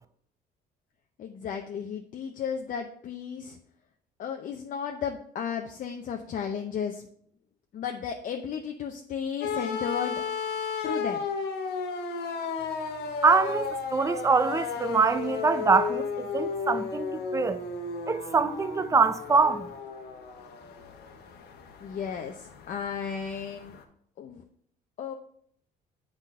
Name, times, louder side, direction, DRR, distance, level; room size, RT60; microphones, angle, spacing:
voice 1, 1.2-3.6 4.2-7.1 7.7-10.2 10.8-11.3 21.8-23.8 24.2-24.4 25.0-25.1, left 7 dB, 50° left, 0.7 m, -34 dB
sound 1, 9.4-23.8, left 5 dB, 75° left, 1.2 m, -34 dB
voice 2, 13.2-17.6 18.1-19.7, right 4 dB, 20° right, 0.5 m, -24 dB
8.4 x 3.9 x 5.4 m
cardioid pair, 110°, 17 cm